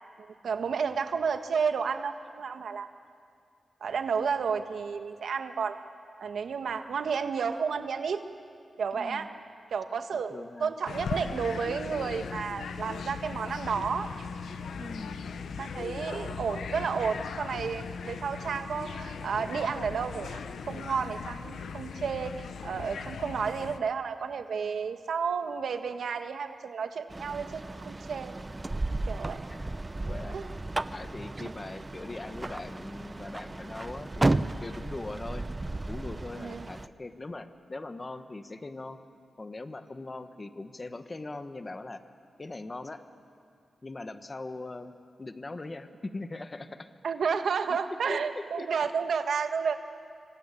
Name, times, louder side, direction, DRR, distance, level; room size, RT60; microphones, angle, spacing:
voice 1, 0.0-2.9 3.8-5.8 6.2-8.2 8.8-9.3 9.7-14.1 14.8-14.9 15.6-20.4 20.7-28.3 29.1-29.5 30.3-30.5 31.4-31.5 36.4-36.6 47.0-49.8, right 6 dB, 75° right, 7 dB, 1.5 m, -31 dB
voice 2, 9.0-9.3 10.1-10.7 14.8-15.2 29.5-29.7 30.0-34.3 34.6-35.5 35.9-39.0 39.4-42.0 42.4-43.0 43.8-44.9 45.2-46.9 47.7-47.8 48.1-48.9, left 2 dB, 30° left, 9 dB, 1.3 m, -41 dB
sound 1, 10.9-23.8, left 5 dB, 85° left, 1.0 m, -38 dB
sound 2, 27.1-36.9, right 2 dB, 20° right, 0.7 m, -34 dB
25.5 x 25.0 x 8.6 m, 2.3 s
wide cardioid pair, 100°, 0 cm